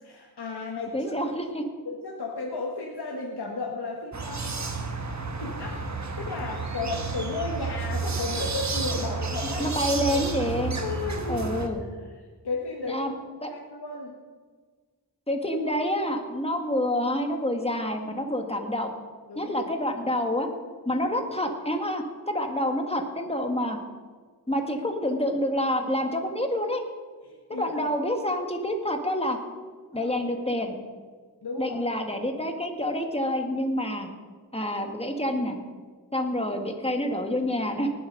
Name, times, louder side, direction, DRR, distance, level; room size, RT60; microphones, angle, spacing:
voice 1, 0.0-1.2 1.8-5.8 6.2-10.2 10.8-11.5 12.0-12.1 12.4-13.1 13.4-14.1 19.3-19.7 27.2-27.9 29.9-30.1 31.4-31.8, left 3 dB, 75° left, -1 dB, 1.6 m, -34 dB
voice 2, 0.9-1.6 9.6-10.7 11.3-11.8 12.9-13.1 13.4-13.5 15.3-18.9 19.4-20.5 20.9-23.8 24.5-26.8 27.5-29.4 29.9-30.7 31.6-34.1 34.5-35.6 36.1-37.9, left 1 dB, 15° left, 4 dB, 1.8 m, -27 dB
sound 1, 4.1-11.7, right 4 dB, 45° right, 1.4 m, -31 dB
19.0 x 7.5 x 5.4 m, 1.5 s
wide cardioid pair, 60°, 39 cm